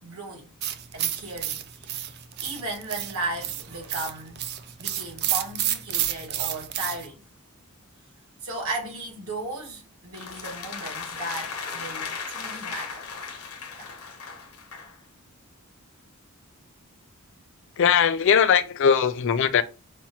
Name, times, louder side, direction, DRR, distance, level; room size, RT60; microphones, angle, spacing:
voice 1, 0.0-0.5 0.9-2.2 2.4-4.4 4.8-7.1 8.4-13.1 13.8-13.9, right 2 dB, 75° right, 1.3 m, -36 dB
sound 1, 0.6-7.1, right 11 dB, 45° right, 0.4 m, -30 dB
sound 2, 10.1-15.0, left 5 dB, 80° left, 0.7 m, -36 dB
voice 2, 17.8-19.6, left 7 dB, 55° left, 0.3 m, -20 dB
5.7 x 2.1 x 2.8 m
head